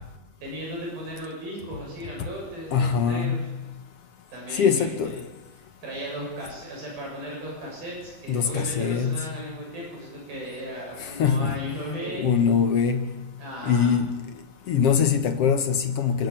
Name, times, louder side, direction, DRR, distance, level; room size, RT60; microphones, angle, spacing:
voice 1, 0.4-3.4 4.3-5.2 5.8-12.2 13.4-13.9, equal, 80° right, 9.0 m, -36 dB
voice 2, 2.7-3.6 4.5-5.2 8.3-9.3 11.0-11.6 12.1-13.2 13.6-14.1 14.7-16.3, left 6 dB, 65° left, 1.5 m, -23 dB
26.5 x 13.0 x 8.9 m
omnidirectional pair, 4.1 m